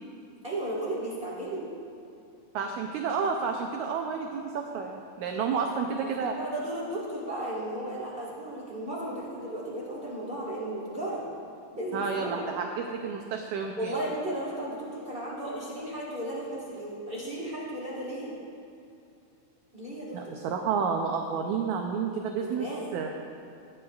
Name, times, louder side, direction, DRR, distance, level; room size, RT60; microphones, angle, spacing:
voice 1, 0.4-1.7 5.5-5.6 6.2-11.2 11.7-12.5 13.8-18.3 19.7-20.4 22.4-22.9, right 1 dB, 55° right, -7 dB, 0.6 m, -35 dB
voice 2, 2.5-6.4 11.9-13.9 20.1-22.7 22.9-23.1, right 5 dB, 90° right, 3 dB, 1.6 m, -30 dB
15.5 x 9.4 x 2.3 m, 2.6 s
omnidirectional pair, 4.0 m